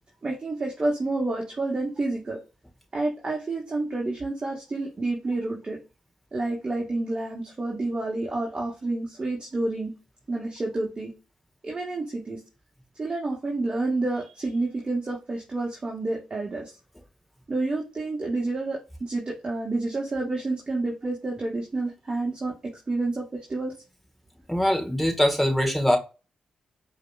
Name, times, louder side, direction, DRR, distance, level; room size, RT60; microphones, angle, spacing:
voice 1, 0.2-2.4 2.9-5.8 6.3-9.9 10.3-11.1 11.6-12.4 13.0-16.7 17.5-22.6 22.9-23.7, right 2 dB, 35° right, 1.2 m, -29 dB
voice 2, 24.5-26.0, equal, ahead, 1.3 m, -22 dB
4.8 x 2.9 x 2.3 m
supercardioid pair, 45°, 2 cm